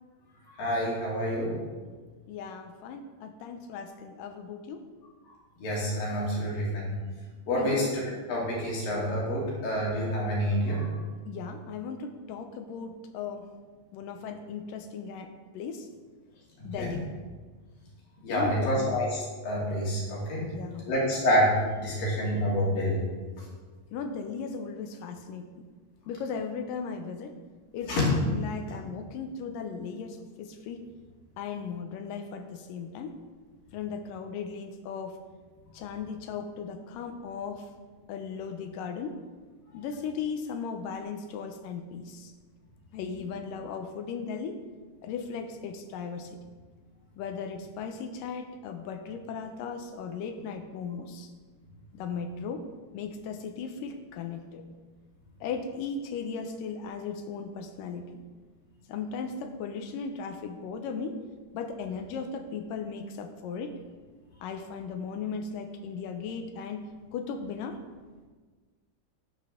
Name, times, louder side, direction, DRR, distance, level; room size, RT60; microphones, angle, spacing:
voice 1, 0.5-1.6 5.6-6.9 7.5-8.0 8.3-10.9 16.6-16.9 18.2-20.4 20.9-23.0 27.9-28.1 39.7-39.8, equal, 60° left, -6 dB, 4.4 m, -28 dB
voice 2, 2.3-4.9 7.6-7.8 11.3-13.5 13.9-15.9 16.6-17.1 18.3-18.9 20.4-20.9 23.9-25.7 26.1-27.3 27.7-30.9 31.4-33.2 33.7-35.2 35.7-37.7 38.1-39.2 39.7-42.3 42.9-44.6 45.0-46.4 47.2-51.3 51.9-52.7 52.9-54.6 55.4-58.2 58.9-61.2 61.5-63.7 64.4-67.8, left 5 dB, 75° left, 5 dB, 2.1 m, -37 dB
13.0 x 10.5 x 3.7 m, 1.4 s
omnidirectional pair, 4.5 m